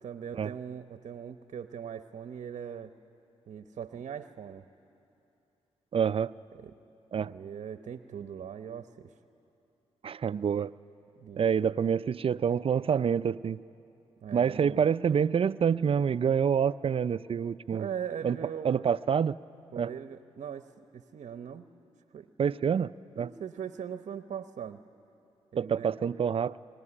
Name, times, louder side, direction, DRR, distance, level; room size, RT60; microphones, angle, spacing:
voice 1, 0.0-2.9 3.5-4.6 6.5-6.7 7.2-9.1 11.2-11.5 14.2-14.8 17.7-18.8 19.7-21.7 22.1-22.3 23.2-24.8 25.5-25.9, right 8 dB, 65° right, 9 dB, 0.9 m, -40 dB
voice 2, 5.9-6.3 7.1-7.3 10.0-10.7 11.4-13.6 14.3-17.9 18.2-18.4 18.6-19.4 19.8-19.9 22.4-22.9 23.2-23.3 25.6-26.5, right 7 dB, 50° right, 16 dB, 0.5 m, -27 dB
24.0 x 20.5 x 9.9 m, 2.8 s
supercardioid pair, 55°, 13 cm